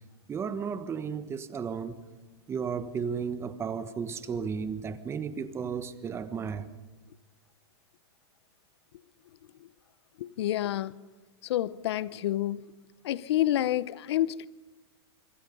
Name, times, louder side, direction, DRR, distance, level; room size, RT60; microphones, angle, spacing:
voice 1, 0.3-2.0 2.5-6.7, right 6 dB, 20° right, 1.4 m, -34 dB
voice 2, 10.2-11.0 11.4-12.6 13.0-14.5, left 13 dB, 70° left, 0.8 m, -28 dB
26.0 x 24.5 x 5.5 m
hypercardioid pair, 135°, 14 cm